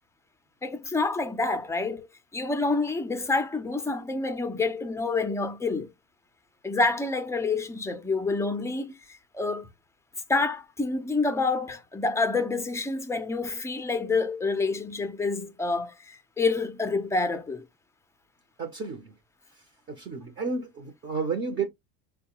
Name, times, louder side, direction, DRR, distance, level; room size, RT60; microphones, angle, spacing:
voice 1, 0.6-2.0 2.3-5.9 6.6-8.9 9.3-9.7 10.3-17.6, left 3 dB, 10° left, 0.5 m, -28 dB
voice 2, 18.6-19.1 19.9-21.7, right 4 dB, 30° right, 0.8 m, -31 dB
4.5 x 2.3 x 2.9 m
cardioid pair, 140°, 36 cm